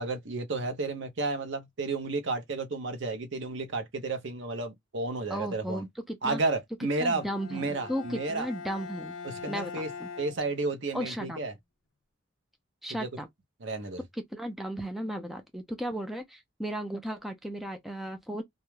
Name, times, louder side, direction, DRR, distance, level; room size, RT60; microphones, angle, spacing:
voice 1, 0.0-5.8 6.2-8.5 9.2-9.9 10.2-11.5 12.9-13.1 13.6-14.0, right 3 dB, 70° right, 0.6 m, -32 dB
voice 2, 5.3-6.4 7.0-9.2 9.5-10.1 10.9-11.4 12.8-13.3 14.1-18.4, equal, ahead, 0.3 m, -35 dB
Bowed string instrument, 7.0-11.1, left 5 dB, 80° left, 0.5 m, -43 dB
2.3 x 2.0 x 3.0 m
head